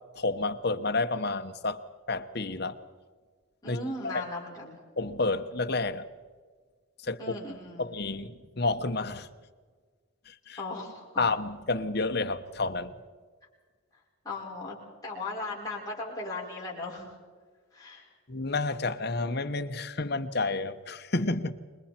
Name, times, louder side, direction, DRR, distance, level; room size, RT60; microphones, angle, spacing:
voice 1, 0.2-1.8 2.1-2.8 3.7-3.8 4.0-4.2 5.0-6.0 7.0-7.3 7.8-9.3 10.3-10.6 11.2-12.9 18.3-21.5, left 3 dB, 50° left, 7 dB, 1.0 m, -30 dB
voice 2, 3.6-4.8 7.2-7.9 10.6-11.3 14.2-14.8 15.0-17.2 17.7-18.1, left 2 dB, 15° left, -5 dB, 5.6 m, -37 dB
26.5 x 22.0 x 4.4 m, 1.5 s
head